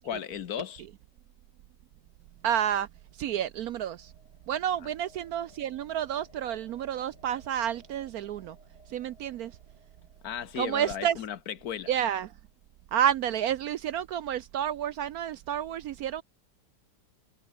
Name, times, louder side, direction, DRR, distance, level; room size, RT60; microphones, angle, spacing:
voice 1, 0.0-0.8 4.8-4.9 10.2-11.9, left 9 dB, 60° left, 1.3 m, -36 dB
sound 1, 2.3-12.5, left 1 dB, 30° left, 6.1 m, -61 dB
voice 2, 2.4-2.9 3.2-4.1 4.5-8.6 8.9-9.5 10.6-11.2 11.9-12.3 12.9-16.2, right 10 dB, 70° right, 1.0 m, -30 dB
omnidirectional pair, 1.9 m